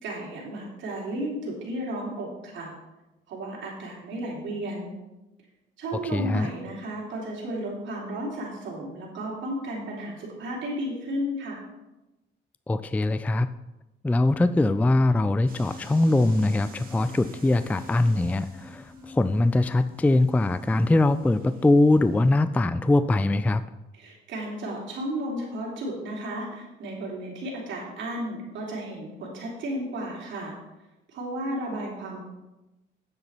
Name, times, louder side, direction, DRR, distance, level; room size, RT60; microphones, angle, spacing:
voice 1, 0.0-2.7 3.3-4.9 5.8-11.6 24.0-30.5 31.1-32.2, right 1 dB, 70° right, -5 dB, 3.3 m, -33 dB
voice 2, 6.1-6.5 12.7-13.5 14.0-23.6, left 2 dB, 10° left, 13 dB, 0.3 m, -22 dB
sound 1, 15.5-22.4, equal, 45° right, 2.0 m, -47 dB
8.7 x 8.0 x 4.5 m, 1.0 s
cardioid pair, 90°, 20 cm